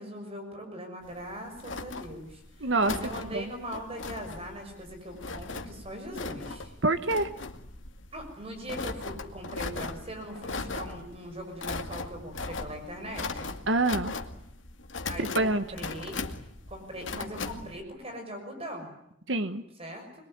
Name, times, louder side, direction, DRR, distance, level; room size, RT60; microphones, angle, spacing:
voice 1, 0.0-6.7 8.1-13.5 15.1-16.2 16.7-18.9 19.8-20.1, equal, 30° right, 4 dB, 6.4 m, -40 dB
sound 1, 1.0-17.8, left 3 dB, 80° left, 2.2 m, -39 dB
voice 2, 2.6-2.9 3.3-3.4 6.8-7.3 13.7-14.1 15.2-15.6 19.3-19.6, right 2 dB, 70° right, 9 dB, 1.5 m, -26 dB
26.5 x 22.5 x 9.7 m, 0.76 s
head